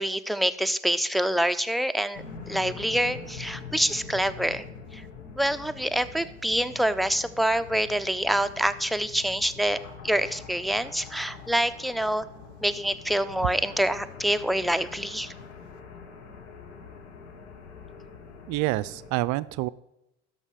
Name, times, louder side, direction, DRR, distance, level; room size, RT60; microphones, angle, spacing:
voice 1, 0.0-4.7 4.9-5.0 5.4-9.8 10.0-12.2 12.6-15.3, right 1 dB, ahead, 10 dB, 0.5 m, -26 dB
sound 1, 2.1-19.1, left 5 dB, 75° left, 1.5 m, -44 dB
voice 2, 18.5-19.7, right 18 dB, 60° right, 18 dB, 0.4 m, -27 dB
12.5 x 5.4 x 4.9 m, 0.91 s
hypercardioid pair, 60°, 34 cm